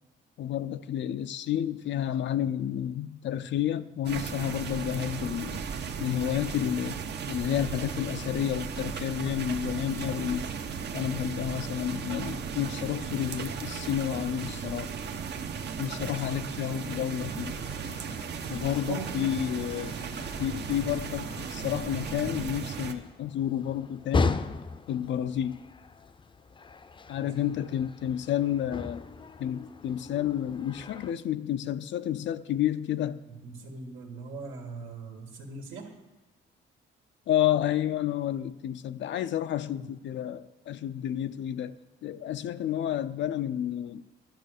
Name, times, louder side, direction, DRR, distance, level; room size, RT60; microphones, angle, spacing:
voice 1, 0.4-5.6 6.0-7.0 7.3-10.5 10.9-14.9 15.8-17.5 18.5-20.0 20.4-24.4 24.9-25.6 27.1-29.1 29.4-33.2 37.3-41.8 42.0-44.0, left 11 dB, 70° left, 0.5 m, -30 dB
sound 1, 4.0-22.9, right 6 dB, 60° right, 1.0 m, -36 dB
sound 2, 17.4-31.1, left 4 dB, 25° left, 0.6 m, -38 dB
voice 2, 33.3-35.9 39.8-39.9, right 4 dB, 85° right, 1.9 m, -40 dB
11.5 x 6.4 x 6.6 m
cardioid pair, 90°, 20 cm